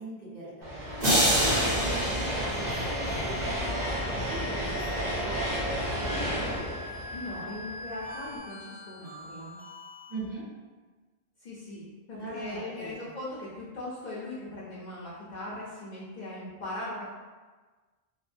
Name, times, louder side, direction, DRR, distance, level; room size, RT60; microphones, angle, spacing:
voice 1, 0.0-5.7 10.1-10.4 12.1-13.0, right 2 dB, 60° right, -11 dB, 1.4 m, -41 dB
sound 1, 0.6-8.0, equal, 85° right, 1.0 m, -31 dB
sound 2, 1.0-3.3, equal, 45° right, 0.9 m, -27 dB
sound 3, 1.4-10.1, left 2 dB, 15° right, 0.5 m, -43 dB
voice 2, 6.7-9.6 11.4-17.1, left 1 dB, 55° left, -7 dB, 0.6 m, -39 dB
2.7 x 2.1 x 2.5 m, 1.3 s
omnidirectional pair, 1.0 m